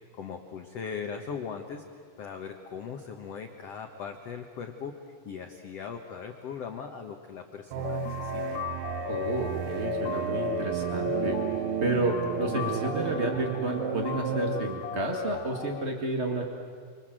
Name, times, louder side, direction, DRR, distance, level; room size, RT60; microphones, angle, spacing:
voice 1, 0.1-1.8 2.2-4.9 5.2-8.6, left 6 dB, 65° left, 4 dB, 1.6 m, -39 dB
sound 1, 7.7-14.6, right 13 dB, 80° right, 2.7 m, -33 dB
sound 2, 7.8-15.8, left 12 dB, 85° left, 2.9 m, -36 dB
voice 2, 9.1-11.4 11.8-16.4, right 2 dB, 45° right, 1 dB, 0.8 m, -30 dB
29.5 x 25.5 x 7.7 m, 2.1 s
omnidirectional pair, 4.6 m